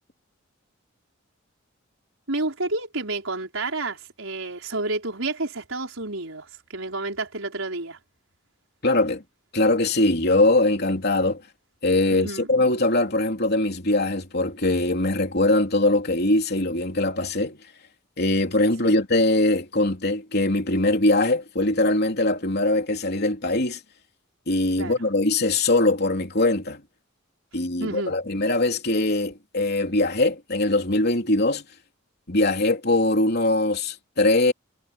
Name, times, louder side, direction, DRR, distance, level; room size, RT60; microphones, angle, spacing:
voice 1, 2.3-8.0 12.1-12.5 18.8-19.0 24.8-25.0 27.8-28.1, right 2 dB, 80° right, 5.0 m, -30 dB
voice 2, 8.8-9.2 9.5-11.4 11.8-17.6 18.2-23.8 24.5-26.8 27.5-31.6 32.3-34.5, left 2 dB, 55° left, 3.2 m, -22 dB
head